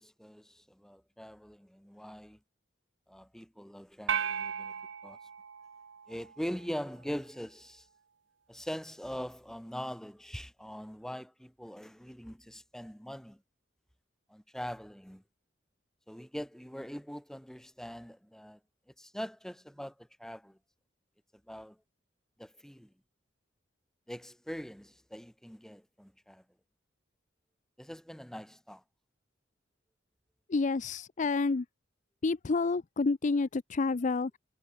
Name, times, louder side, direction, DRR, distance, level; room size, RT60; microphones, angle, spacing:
voice 1, 0.0-2.4 3.1-4.7 5.0-5.2 6.1-7.9 8.5-13.4 14.3-15.2 16.1-18.6 19.0-20.6 21.5-21.8 22.4-22.9 24.1-26.4 27.8-28.8, equal, 5° left, 1.5 m, -42 dB
sound 1, 4.1-6.6, right 7 dB, 90° right, 0.7 m, -36 dB
voice 2, 30.5-31.6 32.2-34.4, left 3 dB, 40° left, 0.5 m, -29 dB
head